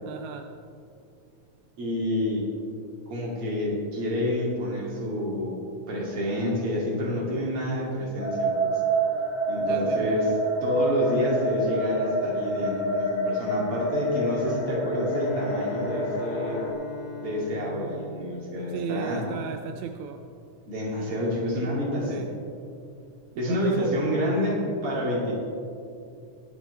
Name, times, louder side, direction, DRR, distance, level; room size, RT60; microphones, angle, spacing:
voice 1, 0.0-0.5 9.6-10.2 18.7-20.3 22.0-22.3 23.4-24.0, right 7 dB, 80° right, 6 dB, 1.7 m, -35 dB
voice 2, 1.8-2.4 3.1-8.7 9.5-10.3 10.6-16.6 17.2-19.2 20.7-22.3 23.4-25.3, equal, 45° right, -4 dB, 3.4 m, -28 dB
sound 1, 8.2-16.7, right 1 dB, 75° left, 3.1 m, -28 dB
Bowed string instrument, 15.0-19.3, left 3 dB, 20° left, 2.8 m, -40 dB
22.0 x 8.3 x 3.4 m, 2.5 s
omnidirectional pair, 3.6 m